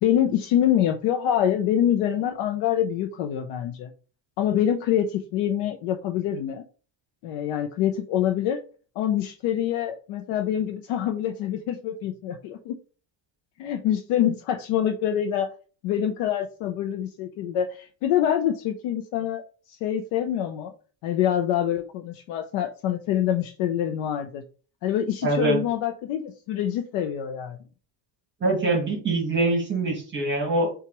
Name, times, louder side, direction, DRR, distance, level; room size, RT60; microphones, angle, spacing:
voice 1, 0.0-3.9 4.4-6.6 7.2-8.6 9.0-12.8 13.6-15.5 15.8-19.4 19.7-20.7 21.0-24.4 24.8-27.6, left 10 dB, 80° left, 5 dB, 0.7 m, -25 dB
voice 2, 25.2-25.6 28.4-30.7, right 2 dB, 25° right, 1 dB, 1.1 m, -24 dB
5.6 x 2.5 x 3.0 m, 0.38 s
cardioid pair, 165°, 49 cm